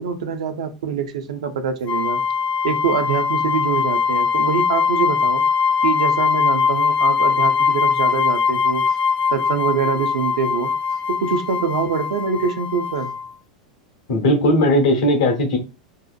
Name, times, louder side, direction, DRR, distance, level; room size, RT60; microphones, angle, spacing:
voice 1, 0.0-2.2 2.6-5.4 5.8-8.8 9.3-10.7 11.1-13.1, right 6 dB, 65° right, 0.4 m, -24 dB
sound 1, 1.9-13.3, left 6 dB, 40° left, 0.4 m, -21 dB
voice 2, 14.1-15.6, left 1 dB, 60° left, 0.8 m, -17 dB
2.7 x 2.1 x 2.4 m
figure-of-eight pair, 85°, 4 cm